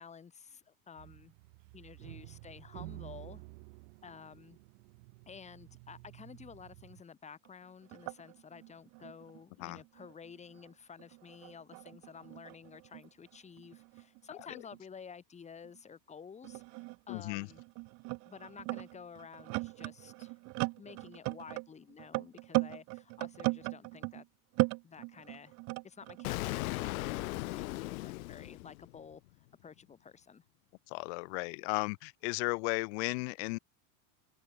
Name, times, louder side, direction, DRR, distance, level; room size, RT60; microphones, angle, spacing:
voice 1, 0.0-1.3 1.7-3.4 4.0-4.6 5.3-17.6 18.3-20.4 20.8-24.3 24.8-25.6 25.8-29.2 29.6-30.4, left 6 dB, 15° left, 5.2 m, -52 dB
sound 1, 1.0-7.0, right 27 dB, 55° right, 2.3 m, -51 dB
sound 2, 7.4-7.5 7.8-10.7 11.0-14.8 15.6-15.8 16.4-24.2 24.5-26.3, right 28 dB, 35° right, 0.9 m, -38 dB
voice 2, 17.1-17.5 30.9-33.6, left 30 dB, 50° left, 0.9 m, -35 dB
Explosion, 26.2-29.2, left 21 dB, 65° left, 3.4 m, -37 dB
supercardioid pair, 165°, 45 cm